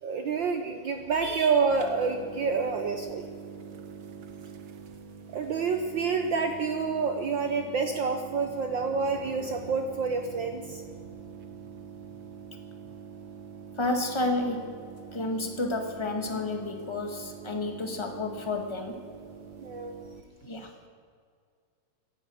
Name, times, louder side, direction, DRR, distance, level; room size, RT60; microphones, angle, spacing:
voice 1, 0.0-3.3 5.3-10.8 19.6-19.9, right 5 dB, 75° right, 6 dB, 1.0 m, -28 dB
sound 1, 1.7-20.2, right 6 dB, 55° right, 1.4 m, -45 dB
voice 2, 13.8-19.0 20.4-20.7, left 2 dB, 15° left, 4 dB, 0.9 m, -31 dB
17.5 x 11.0 x 6.9 m, 2.1 s
omnidirectional pair, 3.3 m